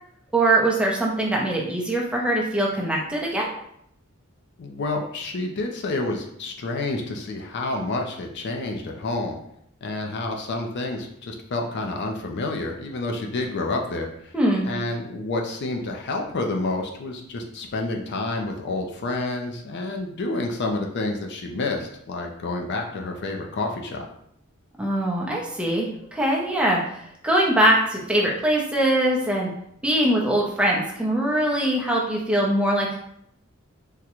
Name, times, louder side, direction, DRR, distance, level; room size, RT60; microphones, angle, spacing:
voice 1, 0.3-3.5 14.3-14.7 24.8-26.8 27.2-29.5 29.8-33.0, right 1 dB, 5° right, -3 dB, 0.6 m, -22 dB
voice 2, 4.6-9.4 9.8-14.3 14.6-24.1, left 2 dB, 55° left, 2 dB, 0.4 m, -29 dB
3.6 x 2.1 x 2.9 m, 0.71 s
head